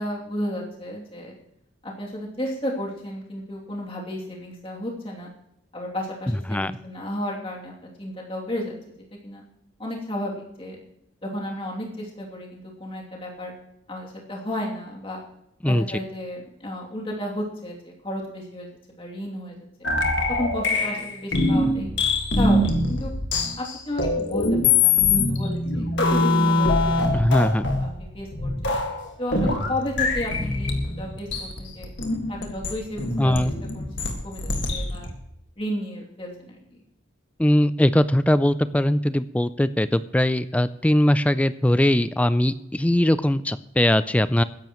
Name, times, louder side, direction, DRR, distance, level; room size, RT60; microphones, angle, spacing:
voice 1, 0.0-1.4 1.8-5.3 5.7-8.7 9.2-9.4 9.8-10.8 11.2-13.5 13.9-15.2 15.6-19.6 20.3-21.9 22.4-23.1 23.6-25.8 26.1-27.2 27.8-27.9 28.1-28.7 29.2-31.9 32.3-35.1 35.6-36.8, left 1 dB, 30° left, -3 dB, 2.8 m, -33 dB
sound 1, 19.8-35.1, left 2 dB, 60° left, 1.9 m, -23 dB
voice 2, 27.1-27.7 33.2-33.6 37.4-44.4, left 1 dB, 5° left, 14 dB, 0.3 m, -20 dB
21.5 x 10.5 x 3.1 m, 0.80 s
head